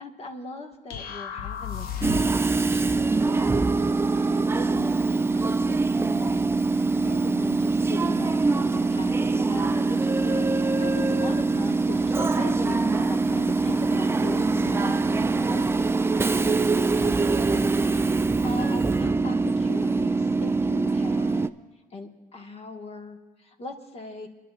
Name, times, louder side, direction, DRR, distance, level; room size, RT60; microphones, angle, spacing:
voice 1, 0.0-21.5 21.9-24.3, left 3 dB, 45° left, 2 dB, 1.5 m, -40 dB
sound 1, 0.9-2.5, left 9 dB, 90° left, 0.7 m, -34 dB
Train / Subway metro underground, 2.0-21.5, right 3 dB, 15° right, 0.3 m, -23 dB
29.0 x 11.0 x 2.4 m, 1.3 s
cardioid pair, 90°, 15 cm